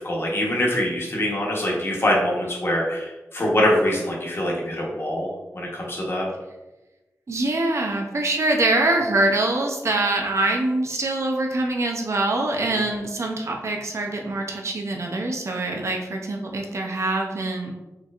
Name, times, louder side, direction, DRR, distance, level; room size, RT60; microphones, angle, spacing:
voice 1, 0.0-5.3 5.5-6.3, left 1 dB, 45° left, -3 dB, 1.1 m, -24 dB
voice 2, 7.3-17.7, right 2 dB, 55° right, 1 dB, 0.5 m, -24 dB
4.4 x 2.9 x 2.5 m, 1.1 s
wide cardioid pair, 65°, 6 cm